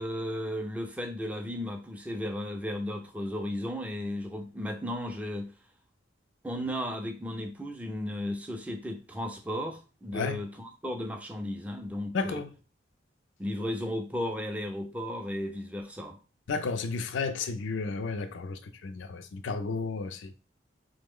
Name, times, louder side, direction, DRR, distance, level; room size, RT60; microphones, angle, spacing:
voice 1, 0.0-5.5 6.4-12.4 13.4-16.2, equal, 5° right, 0.4 m, -35 dB
voice 2, 12.1-12.5 16.5-20.3, left 4 dB, 75° left, 0.4 m, -32 dB
3.1 x 2.0 x 3.6 m
head